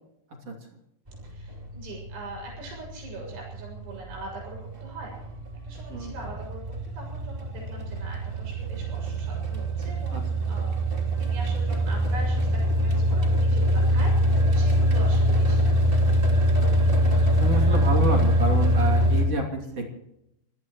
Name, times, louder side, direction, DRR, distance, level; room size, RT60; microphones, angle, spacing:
sound 1, 1.1-19.2, equal, 15° right, 2.5 m, -24 dB
voice 1, 1.2-5.1 5.6-6.6 6.9-10.8 11.2-16.1 16.4-16.6 17.1-18.1 18.5-18.6, right 2 dB, 85° right, -2 dB, 9.1 m, -42 dB
voice 2, 17.1-19.9, right 2 dB, 40° right, 1 dB, 3.4 m, -29 dB
25.0 x 17.5 x 3.2 m, 0.80 s
omnidirectional pair, 5.3 m